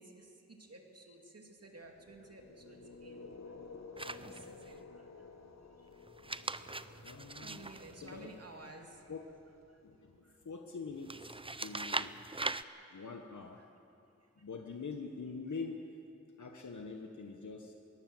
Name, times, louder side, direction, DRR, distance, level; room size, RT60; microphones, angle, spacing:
voice 1, 0.0-3.3 4.0-5.1 5.8-5.9 6.9-7.0 7.4-9.1 9.7-9.8 10.2-10.3 11.4-11.5 12.9-13.0, right 2 dB, 55° right, 2 dB, 2.5 m, -54 dB
sound 1, 1.9-10.0, left 4 dB, 65° left, 1.5 m, -53 dB
sound 2, 4.0-4.7 6.1-8.7 11.0-12.6, right 2 dB, 20° right, 0.6 m, -40 dB
voice 2, 7.0-7.7 8.0-8.3 9.1-9.3 9.8-12.2 12.9-13.6 14.4-15.8 16.4-17.7, left 4 dB, 85° left, 3 dB, 1.3 m, -44 dB
22.5 x 18.0 x 7.8 m, 2.8 s
wide cardioid pair, 65°, 29 cm